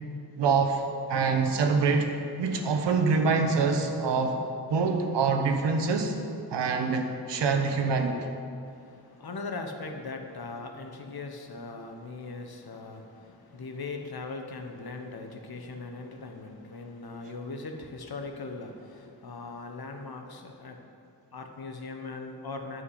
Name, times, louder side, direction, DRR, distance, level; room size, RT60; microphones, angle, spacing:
voice 1, 0.4-0.8 1.1-2.1 2.4-4.4 4.7-6.1 6.5-8.2, right 4 dB, 85° right, 4 dB, 1.0 m, -25 dB
voice 2, 8.6-20.9 21.3-22.8, left 3 dB, 60° left, 4 dB, 1.3 m, -40 dB
9.6 x 5.6 x 8.1 m, 2.5 s
cardioid pair, 45°, 41 cm